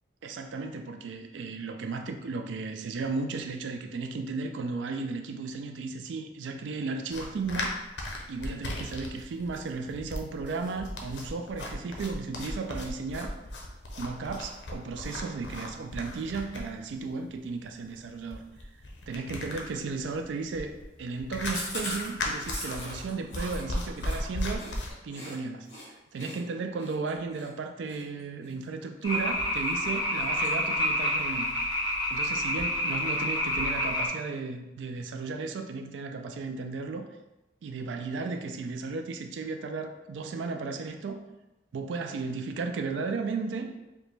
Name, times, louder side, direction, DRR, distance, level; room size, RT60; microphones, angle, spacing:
voice 1, 0.2-7.8 8.3-13.4 14.0-18.4 19.1-24.7 25.0-31.5 32.1-37.1 37.6-41.3 41.7-43.7, right 4 dB, 75° right, 6 dB, 0.3 m, -35 dB
sound 1, 7.1-24.9, left 1 dB, 70° left, 0.6 m, -37 dB
Chewing mastication, 21.4-25.3 25.7-25.9 26.2-29.2 29.6-29.9 30.2-31.0 31.3-31.4 31.7-31.8 32.1-32.7, left 1 dB, 40° left, 1.3 m, -40 dB
sound 2, 29.0-34.1, left 1 dB, 25° left, 1.0 m, -28 dB
4.9 x 2.1 x 3.2 m, 0.98 s
head